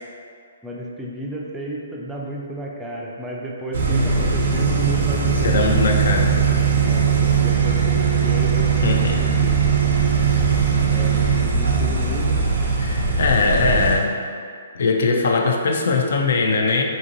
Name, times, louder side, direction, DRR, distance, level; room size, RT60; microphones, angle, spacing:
voice 1, 0.6-5.7 6.8-9.6 10.9-12.4 15.1-15.3, right 1 dB, 5° right, -3 dB, 0.3 m, -32 dB
sound 1, 3.7-14.0, right 5 dB, 65° right, 0.5 m, -19 dB
voice 2, 5.4-6.4 8.8-9.2 12.8-14.1 14.7-16.8, left 3 dB, 70° left, 1 dB, 0.4 m, -20 dB
2.8 x 2.6 x 2.6 m, 2.2 s
hypercardioid pair, 150°, 0 cm